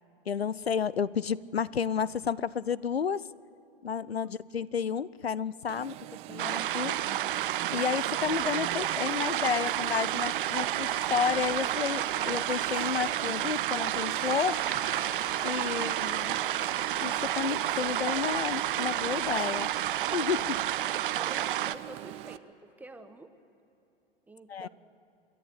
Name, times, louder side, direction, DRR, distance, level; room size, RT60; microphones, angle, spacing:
voice 1, 0.3-3.3 3.8-6.0 6.3-7.0 7.7-14.6 15.4-16.4 17.0-19.7 20.1-20.6 24.5-24.7, left 7 dB, 85° left, 21 dB, 0.5 m, -31 dB
Alarm, 5.7-22.4, right 17 dB, 20° right, 0.4 m, -42 dB
sound 1, 6.4-21.8, right 12 dB, 60° right, 0.6 m, -30 dB
sound 2, 8.2-20.9, left 2 dB, 50° left, 6.7 m, -54 dB
voice 2, 21.1-23.3 24.3-24.7, right 2 dB, 5° right, 8 dB, 1.2 m, -48 dB
27.5 x 11.0 x 9.9 m, 2.9 s
figure-of-eight pair, 100°, 30 cm